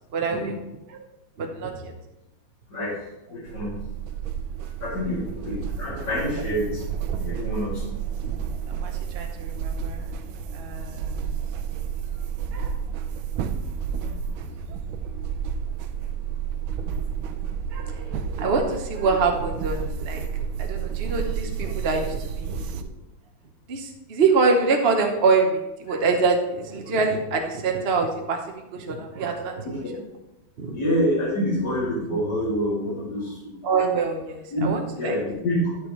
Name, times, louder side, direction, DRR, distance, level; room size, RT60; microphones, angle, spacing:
voice 1, 0.1-0.6 0.9-1.0 1.4-1.9 8.7-10.1 10.5-11.2 12.5-12.8 13.9-14.2 17.7-20.2 20.6-22.7 23.7-28.4 28.7-29.7 30.6-30.8 33.6-35.2, right 4 dB, 45° right, 3 dB, 0.8 m, -25 dB
voice 2, 3.3-3.8 4.8-6.8 7.1-7.9 29.6-29.9 30.7-33.6 34.5-34.7 35.0-35.7, equal, 55° left, -10 dB, 3.2 m, -27 dB
sound 1, 3.5-22.8, right 7 dB, 85° right, 1.4 m, -31 dB
12.0 x 6.9 x 3.1 m, 0.94 s
omnidirectional pair, 2.2 m